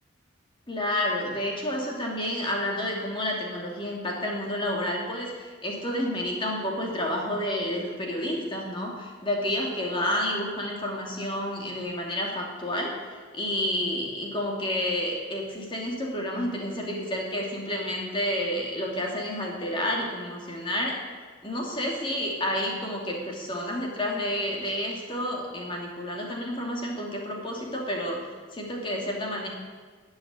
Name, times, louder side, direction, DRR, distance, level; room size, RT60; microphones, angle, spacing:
voice 1, 0.7-21.0 21.4-28.2 28.5-29.5, left 1 dB, 25° left, -1 dB, 2.6 m, -30 dB
14.0 x 8.0 x 9.7 m, 1.5 s
head